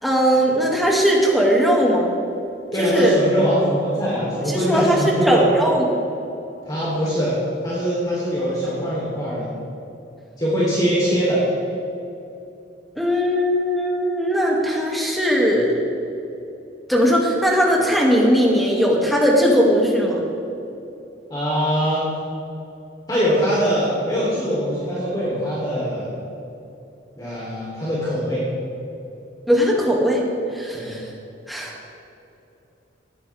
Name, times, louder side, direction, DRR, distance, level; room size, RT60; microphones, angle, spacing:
voice 1, 0.0-2.1 2.7-3.2 4.3-6.0 13.0-15.7 16.9-20.2 29.5-30.3 30.5-31.1 31.5-31.7, equal, ahead, -3 dB, 2.6 m, -19 dB
voice 2, 2.7-5.4 6.7-7.4 7.6-9.5 10.4-11.4 21.3-22.1 23.1-26.1 27.2-28.4 30.7-30.9, equal, 20° left, -8 dB, 3.8 m, -22 dB
19.5 x 15.5 x 3.7 m, 2.8 s
head